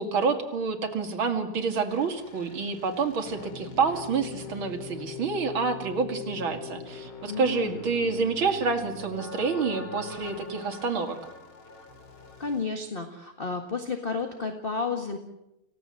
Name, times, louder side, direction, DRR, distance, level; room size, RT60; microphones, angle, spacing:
voice 1, 0.0-11.2, right 5 dB, 70° right, 5 dB, 3.1 m, -28 dB
sound 1, 1.9-12.7, left 5 dB, 70° left, 3.3 m, -42 dB
voice 2, 7.3-7.8 12.4-15.2, left 4 dB, 25° left, 5 dB, 1.8 m, -31 dB
29.0 x 17.0 x 7.7 m, 0.88 s
omnidirectional pair, 2.3 m